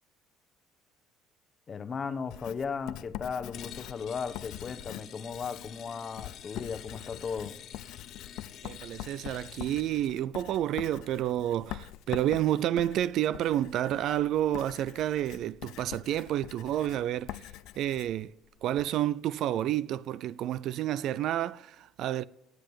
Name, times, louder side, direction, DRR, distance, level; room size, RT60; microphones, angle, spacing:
voice 1, 1.7-7.6, left 6 dB, 30° left, 1.0 m, -36 dB
Writing, 2.3-18.9, left 15 dB, 75° left, 0.5 m, -44 dB
sound 1, 3.5-10.1, left 9 dB, 50° left, 1.6 m, -48 dB
voice 2, 8.6-17.5 17.8-18.3 18.6-22.2, right 12 dB, 60° right, 0.4 m, -30 dB
18.5 x 7.8 x 7.1 m
cardioid pair, 145°, 0 cm